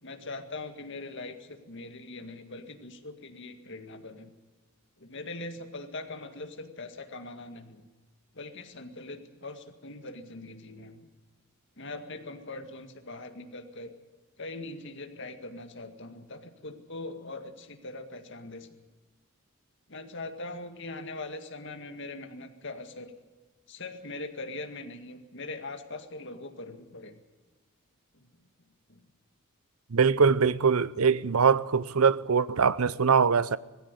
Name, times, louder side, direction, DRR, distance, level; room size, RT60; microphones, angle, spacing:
voice 1, 0.0-4.3 5.0-7.9 8.3-11.1 11.8-14.0 14.4-18.8 19.9-23.1 23.7-27.2 28.1-28.4 28.9-29.1, left 2 dB, 55° left, 2.1 m, -41 dB
voice 2, 29.9-33.6, right 6 dB, 80° right, 0.7 m, -23 dB
19.0 x 16.0 x 9.8 m
head